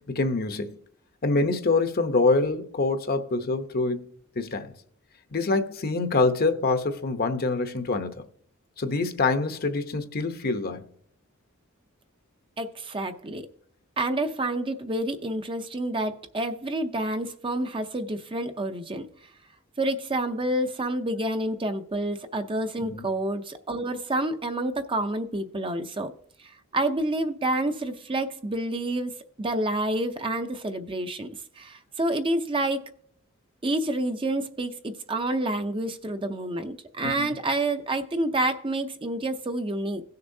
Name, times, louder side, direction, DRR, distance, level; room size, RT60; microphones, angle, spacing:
voice 1, 0.1-0.8 1.2-4.1 4.4-4.7 5.3-8.2 8.8-10.8 22.9-23.0 37.0-37.3, left 3 dB, 45° left, 0.8 m, -25 dB
voice 2, 12.6-13.4 14.0-19.1 19.8-26.1 26.7-29.1 29.4-31.3 31.6-32.9 33.6-40.0, right 1 dB, 25° right, 0.6 m, -28 dB
17.0 x 6.7 x 2.7 m
head